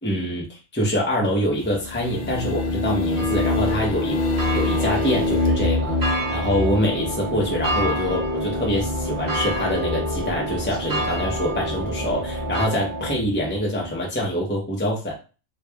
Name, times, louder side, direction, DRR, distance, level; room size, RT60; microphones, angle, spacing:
voice 1, 0.0-4.2 4.5-15.2, equal, 10° left, -3 dB, 0.9 m, -25 dB
sound 1, 1.6-13.9, left 2 dB, 55° left, 0.7 m, -27 dB
sound 2, 3.1-12.7, equal, 20° right, 0.7 m, -29 dB
sound 3, 4.7-13.1, right 4 dB, 60° right, 0.5 m, -34 dB
3.2 x 2.5 x 3.4 m, 0.33 s
omnidirectional pair, 1.3 m